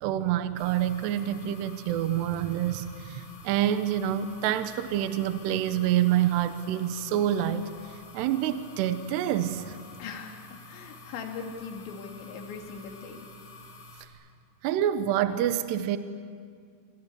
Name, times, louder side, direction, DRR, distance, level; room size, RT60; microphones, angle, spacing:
voice 1, 0.0-7.6 8.1-9.8 14.6-16.0, right 11 dB, 75° right, 10 dB, 2.8 m, -27 dB
sound 1, 0.6-14.1, left 2 dB, 35° left, 3.5 m, -49 dB
voice 2, 10.0-13.3, left 5 dB, 70° left, 3 dB, 4.6 m, -40 dB
27.0 x 24.5 x 8.3 m, 2.1 s
omnidirectional pair, 5.4 m